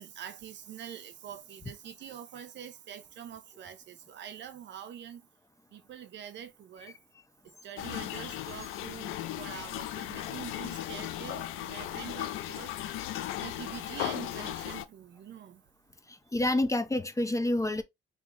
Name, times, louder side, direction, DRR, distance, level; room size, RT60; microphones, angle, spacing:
voice 1, 0.0-5.3 5.7-7.0 7.4-12.7 13.4-15.6, right 9 dB, 65° right, 0.7 m, -45 dB
sound 1, 7.8-14.9, left 12 dB, 90° left, 0.5 m, -37 dB
voice 2, 16.1-17.8, left 1 dB, 15° left, 0.7 m, -28 dB
3.6 x 2.9 x 3.7 m
cardioid pair, 90°, 20 cm